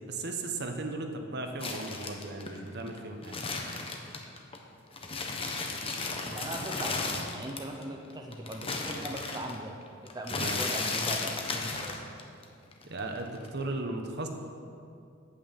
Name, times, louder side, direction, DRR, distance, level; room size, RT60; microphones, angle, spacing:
voice 1, 0.1-3.5 10.3-10.6 12.8-14.3, right 2 dB, 55° right, 4 dB, 1.1 m, -36 dB
sound 1, 1.6-4.6 4.9-7.8 8.1-12.4 12.7-13.6, left 3 dB, 30° left, 1.0 m, -34 dB
voice 2, 2.8-3.1 6.3-12.1, right 1 dB, 20° right, 1 dB, 0.7 m, -40 dB
9.0 x 8.6 x 7.2 m, 2.4 s
head